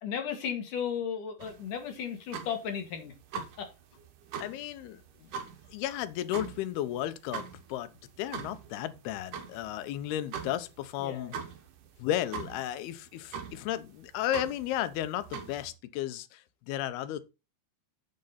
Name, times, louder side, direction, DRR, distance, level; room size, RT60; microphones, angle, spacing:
voice 1, 0.0-3.7 11.0-11.3, left 7 dB, 60° left, 3.4 m, -35 dB
sound 1, 1.4-15.7, right 6 dB, 65° right, 2.7 m, -43 dB
voice 2, 4.4-5.3 5.7-7.4 7.7-7.9 8.2-11.3 12.0-17.3, left 12 dB, 90° left, 2.8 m, -34 dB
7.9 x 7.7 x 4.1 m
omnidirectional pair, 4.4 m